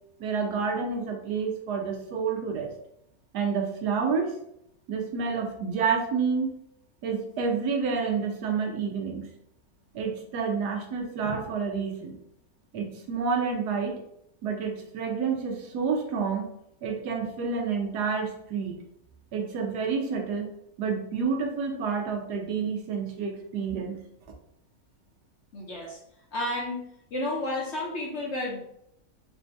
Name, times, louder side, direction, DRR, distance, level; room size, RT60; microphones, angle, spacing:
voice 1, 0.2-2.7 3.3-4.4 4.9-6.5 7.0-9.3 9.9-12.1 12.7-14.0 14.4-16.5 16.8-18.8 19.3-20.5 20.8-24.0, right 5 dB, 80° right, 2 dB, 1.3 m, -29 dB
voice 2, 25.5-26.0 26.3-26.8 27.1-28.6, left 1 dB, 50° left, -2 dB, 0.9 m, -31 dB
4.1 x 2.7 x 3.3 m, 0.75 s
omnidirectional pair, 1.8 m